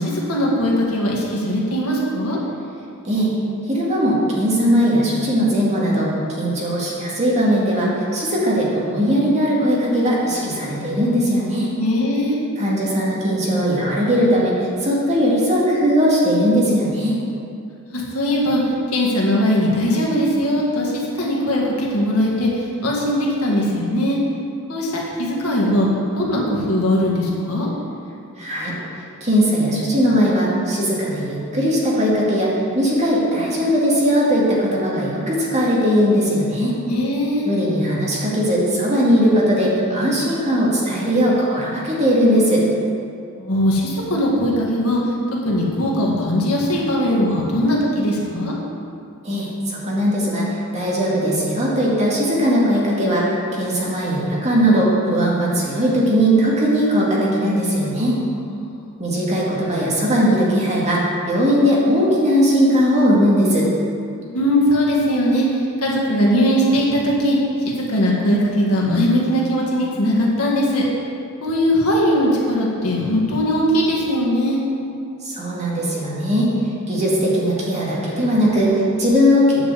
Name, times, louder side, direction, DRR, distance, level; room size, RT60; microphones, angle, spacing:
voice 1, 0.0-2.4 11.8-12.4 17.9-18.6 18.9-24.2 24.7-25.9 26.2-27.7 36.9-37.5 43.4-45.0 45.4-48.5 58.5-58.9 64.2-67.4 67.7-70.8 71.4-74.6, equal, 80° left, -3 dB, 2.0 m, -20 dB
voice 2, 3.7-11.7 12.6-17.2 28.4-28.7 29.2-36.8 37.5-42.6 49.2-53.3 53.5-58.2 59.0-63.7 75.2-76.5 76.9-79.6, equal, 30° right, -5 dB, 2.2 m, -19 dB
9.9 x 5.1 x 7.6 m, 2.5 s
head